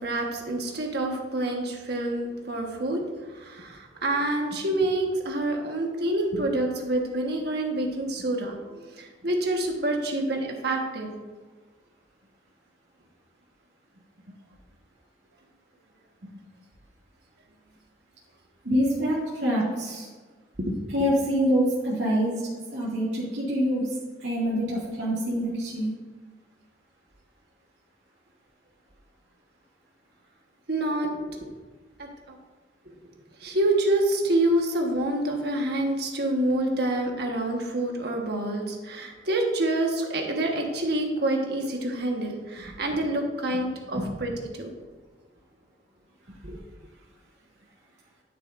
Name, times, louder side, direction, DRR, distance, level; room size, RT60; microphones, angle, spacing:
voice 1, 0.0-3.0 3.3-11.1 30.7-31.1 32.0-32.4 33.4-44.3 44.6-44.7 46.4-46.6, right 1 dB, 60° right, 2 dB, 1.4 m, -27 dB
voice 2, 18.6-20.1 20.9-22.3 22.7-23.9 24.2-25.9 43.9-44.1, equal, 80° right, -7 dB, 2.3 m, -25 dB
10.0 x 8.9 x 2.6 m, 1.3 s
head